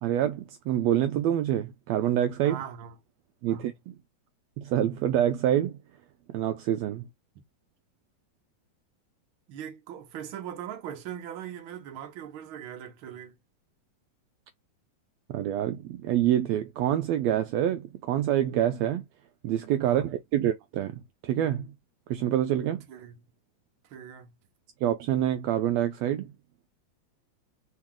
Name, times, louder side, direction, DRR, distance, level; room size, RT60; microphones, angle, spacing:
voice 1, 0.0-2.6 3.4-4.0 4.6-5.8 6.3-7.1 15.3-19.0 19.4-21.7 22.1-22.9 24.8-26.3, right 11 dB, 90° right, 1.5 m, -26 dB
voice 2, 2.4-2.9 3.5-3.6 9.5-13.4 19.8-20.1 22.9-23.1 23.9-24.3, right 9 dB, 65° right, 1.4 m, -40 dB
4.6 x 3.1 x 3.6 m
omnidirectional pair, 3.6 m